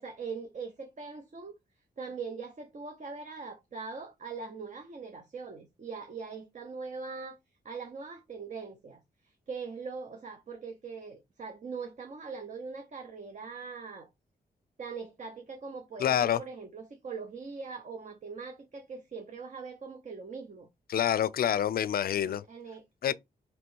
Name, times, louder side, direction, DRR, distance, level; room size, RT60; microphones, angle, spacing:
voice 1, 0.0-1.5 2.0-7.4 7.6-9.0 9.5-14.1 14.8-20.7 22.2-23.1, right 5 dB, 50° right, 0.8 m, -41 dB
voice 2, 16.0-16.4 20.9-22.4 23.0-23.1, left 10 dB, 65° left, 0.4 m, -27 dB
3.1 x 3.0 x 4.5 m
cardioid pair, 80°, 17 cm